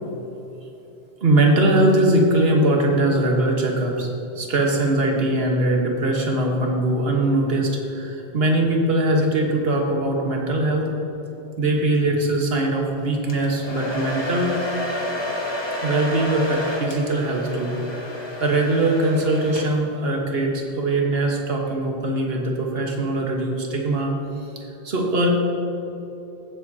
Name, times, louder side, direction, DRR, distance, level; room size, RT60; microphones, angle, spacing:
voice 1, 1.2-4.1 4.3-10.9 11.6-14.6 15.8-18.1 18.4-24.1 24.8-25.3, right 1 dB, 60° right, 0 dB, 1.5 m, -21 dB
Domestic sounds home sounds, 13.3-20.0, left 1 dB, 25° left, 0.9 m, -30 dB
15.0 x 7.8 x 2.8 m, 2.9 s
omnidirectional pair, 1.2 m